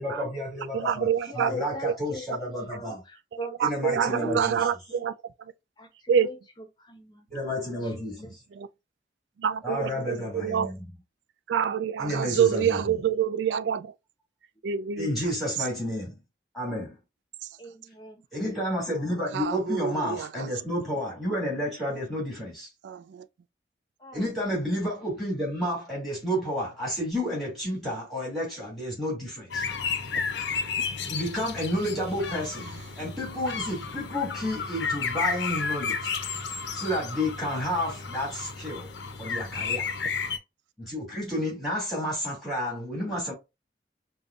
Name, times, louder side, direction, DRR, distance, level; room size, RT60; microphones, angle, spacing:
voice 1, 0.0-1.1 1.3-3.0 3.6-4.7 7.3-8.4 9.6-10.8 12.0-12.8 15.0-16.2 16.5-17.0 18.3-22.7 24.1-29.7 31.1-36.1 36.7-38.9 39.2-39.9 40.8-43.3, equal, ahead, 2.3 m, -31 dB
voice 2, 0.7-1.5 1.8-1.9 3.6-5.1 6.1-6.3 8.5-8.7 9.4-10.7 11.5-13.9 14.6-15.1 15.6-15.7 17.4-17.5 19.3-20.5 22.8-23.3, right 8 dB, 85° right, 0.3 m, -26 dB
voice 3, 1.3-4.4 4.9-5.1 5.8-6.4 6.8-7.3 7.7-8.3 9.8-10.4 17.6-18.2 18.5-18.9 24.0-24.4 30.9-31.1, left 1 dB, 25° left, 0.7 m, -41 dB
sound 1, 29.5-40.4, left 5 dB, 85° left, 0.5 m, -32 dB
5.2 x 2.2 x 2.4 m
head